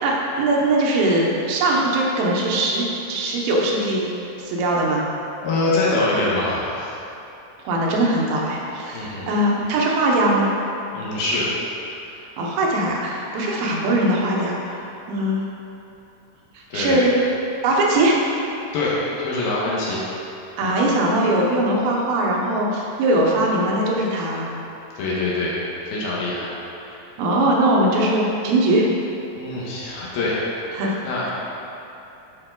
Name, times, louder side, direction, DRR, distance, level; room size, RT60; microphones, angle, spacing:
voice 1, 0.0-4.0 4.4-5.0 7.7-10.5 12.4-14.7 15.1-15.4 16.7-17.3 17.6-18.2 20.6-24.5 26.9-28.9 30.7-31.0, right 1 dB, 80° right, -3 dB, 2.8 m, -20 dB
voice 2, 5.4-6.9 8.9-9.3 10.9-11.5 16.7-17.0 18.7-20.0 25.0-25.6 25.8-26.5 29.3-30.4 31.0-31.3, left 2 dB, 85° left, -6 dB, 3.0 m, -24 dB
10.5 x 4.6 x 3.8 m, 2.9 s
omnidirectional pair, 4.3 m